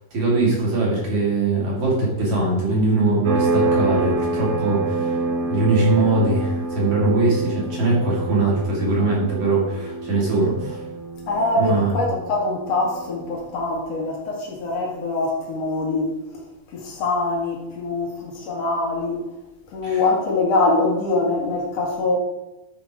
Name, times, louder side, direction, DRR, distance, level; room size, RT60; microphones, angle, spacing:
voice 1, 0.1-5.2 5.5-10.8 11.6-11.9 19.8-20.0, right 2 dB, 50° right, 3.4 m, -21 dB
sound 1, 3.2-13.6, right 3 dB, 65° right, 1.9 m, -27 dB
voice 2, 11.3-16.1 16.7-19.2 19.7-22.2, left 2 dB, 50° left, 2.2 m, -23 dB
12.0 x 5.1 x 4.7 m
omnidirectional pair, 4.8 m